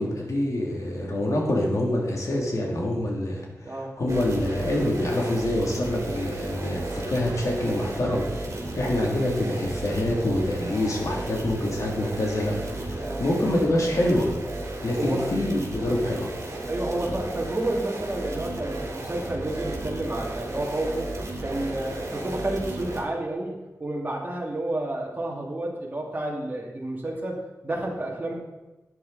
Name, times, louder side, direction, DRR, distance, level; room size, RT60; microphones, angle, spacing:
voice 1, 0.0-8.3 8.7-12.6 12.8-14.3 14.8-16.3, left 1 dB, 65° left, -1 dB, 2.9 m, -26 dB
voice 2, 3.6-4.0 13.0-13.3 15.0-15.4 16.7-21.1 21.4-28.4, right 1 dB, 30° right, -3 dB, 2.7 m, -30 dB
sound 1, 4.1-23.0, right 2 dB, 55° right, 3.0 m, -34 dB
12.0 x 9.6 x 4.2 m, 1.1 s
wide cardioid pair, 90°, 6 cm